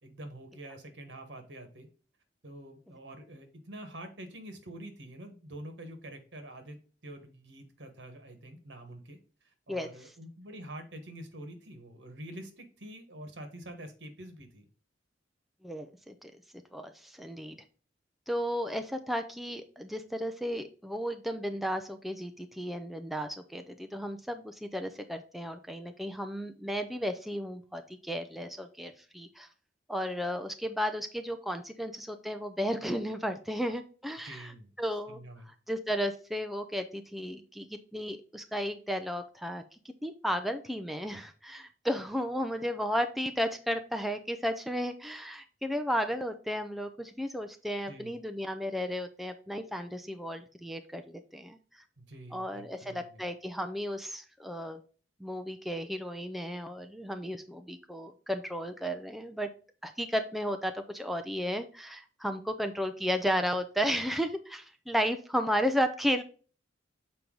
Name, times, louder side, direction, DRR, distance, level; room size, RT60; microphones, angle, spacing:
voice 1, 0.0-1.9 2.4-6.8 7.0-9.2 9.7-14.6 34.2-34.7 35.1-35.5 47.9-48.1 52.0-53.2, right 1 dB, 70° right, 6 dB, 1.4 m, -46 dB
voice 2, 15.6-16.3 16.7-17.6 18.3-29.5 29.9-34.5 34.8-35.2 35.5-39.6 40.0-51.6 52.3-54.8 55.2-59.5 59.8-66.2, equal, ahead, 6 dB, 0.4 m, -34 dB
6.9 x 4.5 x 3.8 m, 0.39 s
head